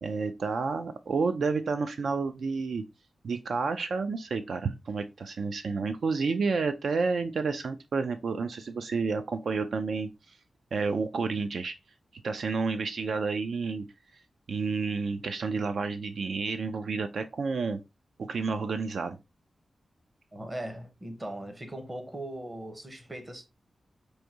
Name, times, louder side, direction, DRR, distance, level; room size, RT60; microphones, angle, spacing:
voice 1, 0.0-2.8 3.2-10.4 10.7-11.7 12.2-13.9 14.1-14.2 14.5-17.8 18.2-19.2, right 4 dB, 75° right, 0.3 m, -30 dB
voice 2, 20.3-23.5, right 1 dB, 25° right, 0.7 m, -39 dB
4.7 x 2.6 x 2.7 m
wide cardioid pair, 120°, 0 cm